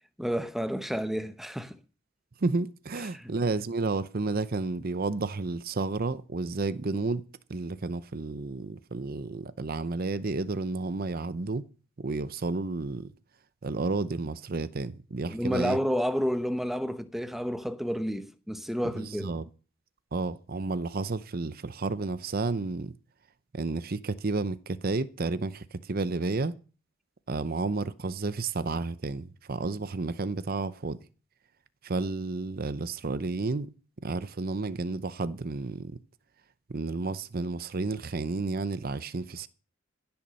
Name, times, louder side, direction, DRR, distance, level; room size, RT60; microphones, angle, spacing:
voice 1, 0.2-1.8 3.1-3.3 15.3-19.3, equal, ahead, 0.9 m, -30 dB
voice 2, 2.4-7.2 7.5-11.7 12.0-13.1 13.6-15.8 18.9-19.4 20.1-22.9 23.5-26.5 27.3-31.0 31.8-33.7 34.0-36.0 36.7-39.5, right 3 dB, 45° right, 0.7 m, -31 dB
16.0 x 7.1 x 6.4 m
head